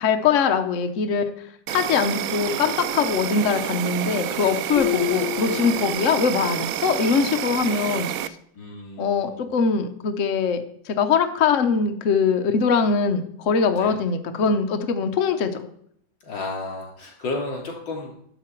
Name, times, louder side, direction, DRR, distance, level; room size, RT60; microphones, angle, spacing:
voice 1, 0.0-8.4 9.0-15.7, left 5 dB, 55° left, 6 dB, 1.0 m, -22 dB
Insect, 1.7-8.3, right 11 dB, 90° right, 0.7 m, -29 dB
sound 1, 4.8-6.5, left 15 dB, 35° left, 1.6 m, -29 dB
voice 2, 8.5-9.4 13.8-13.9 16.2-18.1, left 3 dB, 75° left, 0 dB, 3.5 m, -32 dB
12.5 x 7.5 x 4.5 m, 0.67 s
omnidirectional pair, 2.1 m